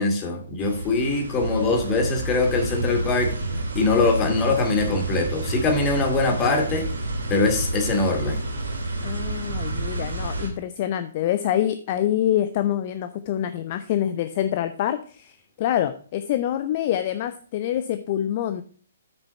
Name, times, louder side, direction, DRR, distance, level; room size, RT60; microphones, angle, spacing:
voice 1, 0.0-3.3 3.7-6.9 7.3-8.4, left 3 dB, 20° left, 4 dB, 2.4 m, -22 dB
sound 1, 0.6-10.5, right 2 dB, 70° right, 3.0 m, -29 dB
voice 2, 9.0-18.6, left 11 dB, 40° left, 11 dB, 0.6 m, -26 dB
8.2 x 6.7 x 4.4 m, 0.43 s
figure-of-eight pair, 130°, 0 cm